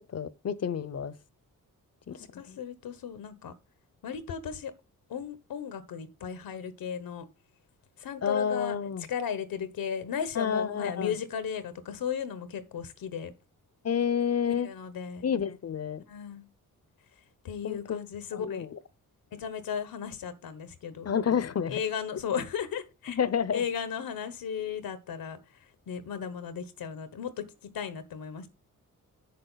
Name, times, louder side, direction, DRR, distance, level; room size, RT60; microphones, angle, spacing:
voice 1, 0.1-1.1 2.5-2.6 8.2-9.1 10.4-11.2 13.8-14.7 15.2-16.0 17.6-18.0 18.3-18.7 21.0-21.8 23.1-23.6, left 7 dB, 45° left, 0.8 m, -29 dB
voice 2, 2.1-3.5 4.0-4.7 5.1-7.2 8.0-8.7 9.1-13.3 14.4-15.2 16.1-16.5 17.4-18.7 19.3-21.1 21.7-23.2 23.5-25.4 25.9-28.5, left 7 dB, 80° left, 1.2 m, -35 dB
7.5 x 6.8 x 4.0 m
cardioid pair, 70°, 34 cm